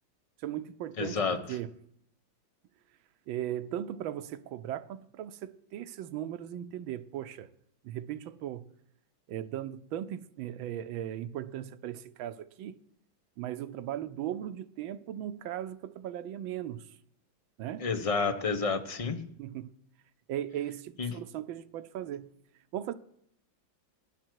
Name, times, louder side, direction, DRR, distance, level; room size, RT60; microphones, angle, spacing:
voice 1, 0.4-1.2 1.5-1.7 3.3-7.5 7.8-8.7 9.3-12.8 13.4-16.9 17.6-17.9 19.4-19.7 20.3-22.3 22.7-22.9, right 11 dB, 90° right, 1.5 m, -37 dB
voice 2, 1.0-1.4 17.8-19.2 21.0-21.1, left 4 dB, 30° left, 0.6 m, -29 dB
18.0 x 11.0 x 4.6 m
omnidirectional pair, 2.1 m